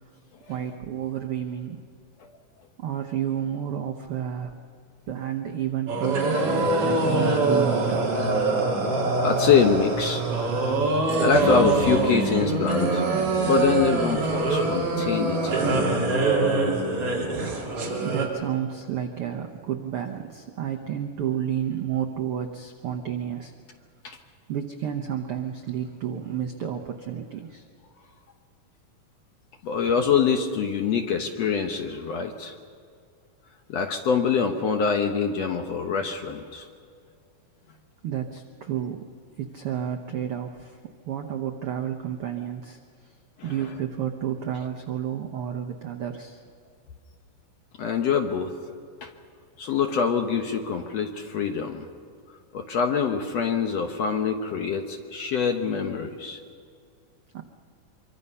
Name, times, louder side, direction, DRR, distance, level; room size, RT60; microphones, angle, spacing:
voice 1, 0.5-1.9 2.8-4.5 5.1-8.3 16.9-17.0 18.0-23.5 24.5-27.6 38.0-39.1 39.4-40.8 41.0-43.1 43.4-46.4 57.3-57.4, right 9 dB, 75° right, 3 dB, 1.3 m, -31 dB
sound 1, 5.9-18.3, right 2 dB, 45° right, 3.6 m, -24 dB
voice 2, 9.2-10.2 10.9-13.0 13.5-15.6 24.0-24.2 29.6-32.6 33.7-36.7 43.4-43.5 47.8-48.5 49.0-49.1 49.6-51.9 52.5-56.4, left 6 dB, 65° left, 4 dB, 1.8 m, -24 dB
25.0 x 23.5 x 5.6 m, 2.3 s
omnidirectional pair, 4.0 m